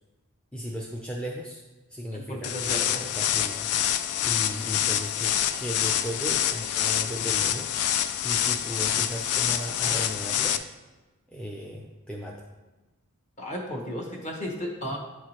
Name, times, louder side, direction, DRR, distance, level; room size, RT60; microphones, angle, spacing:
voice 1, 0.5-1.6 1.9-2.7 3.0-3.7 3.9-7.7 8.2-10.6 11.3-12.4, equal, 5° left, -3 dB, 0.5 m, -36 dB
voice 2, 2.1-3.1 13.4-15.0, equal, 30° left, -1 dB, 1.1 m, -34 dB
sound 1, 2.4-10.6, left 10 dB, 75° left, 0.4 m, -26 dB
8.7 x 4.7 x 3.0 m, 1.1 s
head